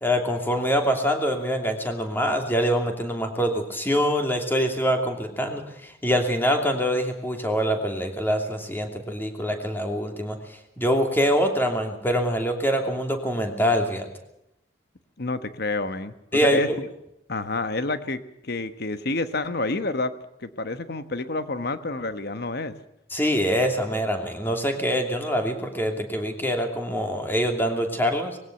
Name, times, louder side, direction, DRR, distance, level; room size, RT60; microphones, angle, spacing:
voice 1, 0.0-14.1 16.3-16.8 23.1-28.4, equal, 10° left, 4 dB, 2.8 m, -24 dB
voice 2, 15.2-16.1 16.4-16.8 17.3-20.1 20.4-22.7, left 2 dB, 60° left, 11 dB, 1.3 m, -28 dB
20.0 x 17.0 x 7.9 m, 0.80 s
head